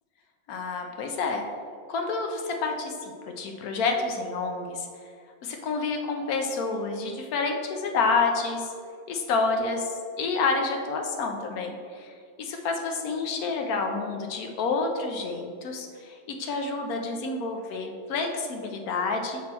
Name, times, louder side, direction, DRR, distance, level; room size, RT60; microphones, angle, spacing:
voice 1, 0.5-1.4 1.9-4.9 5.4-8.7 9.1-12.1 12.4-19.4, left 4 dB, 80° left, 3 dB, 1.2 m, -29 dB
5.9 x 4.3 x 4.2 m, 2.2 s
omnidirectional pair, 1.6 m